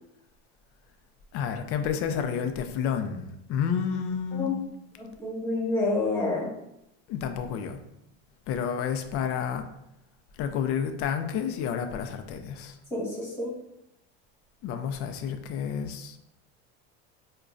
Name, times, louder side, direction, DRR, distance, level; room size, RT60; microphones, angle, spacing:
voice 1, 1.3-4.5 7.1-7.8 8.5-9.6 10.4-12.8 14.6-16.2, left 7 dB, 45° left, 7 dB, 0.4 m, -30 dB
voice 2, 5.2-6.5 12.9-13.5, left 2 dB, 10° left, -5 dB, 1.4 m, -28 dB
4.8 x 2.2 x 2.4 m, 0.82 s
supercardioid pair, 110°, 31 cm